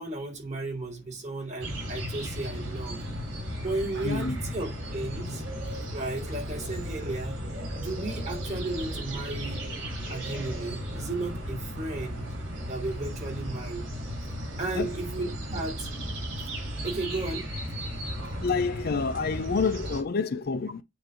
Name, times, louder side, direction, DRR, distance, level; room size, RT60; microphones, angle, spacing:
voice 1, 0.0-3.0 3.6-5.4 5.9-7.3 7.7-9.6 10.1-12.3 12.7-13.9 14.6-15.9 16.8-17.5 18.2-18.3, right 2 dB, 35° right, 3.3 m, -34 dB
sound 1, 1.6-20.0, equal, 65° right, 3.8 m, -35 dB
voice 2, 4.0-4.4 14.7-14.9 18.4-20.8, left 4 dB, 50° left, 0.5 m, -28 dB
8.9 x 3.2 x 5.0 m
head